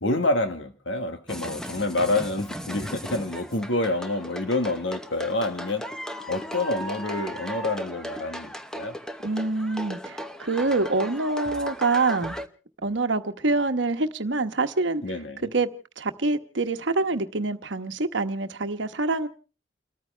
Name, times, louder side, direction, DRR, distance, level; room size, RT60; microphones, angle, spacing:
voice 1, 0.0-5.9 6.3-8.9 15.0-15.5, left 2 dB, 75° left, 1.6 m, -27 dB
sound 1, 1.3-12.5, equal, 5° left, 0.9 m, -37 dB
voice 2, 9.2-12.4 12.8-15.0 15.4-15.7 16.0-19.3, right 3 dB, 70° right, 1.1 m, -26 dB
30.0 x 14.0 x 3.3 m
head